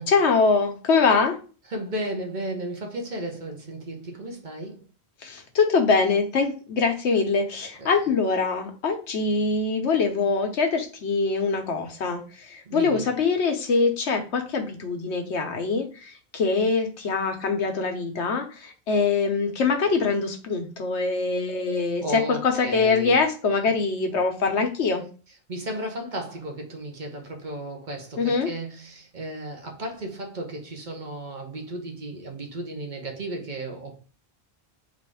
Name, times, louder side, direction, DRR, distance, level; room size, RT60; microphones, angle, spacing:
voice 1, 0.1-1.4 5.2-25.0 28.2-28.5, left 4 dB, 85° left, 1.1 m, -23 dB
voice 2, 1.7-4.8 7.8-7.9 12.7-13.1 22.0-23.2 25.5-34.0, right 1 dB, 45° right, 1.0 m, -34 dB
3.9 x 2.6 x 4.6 m
omnidirectional pair, 1.1 m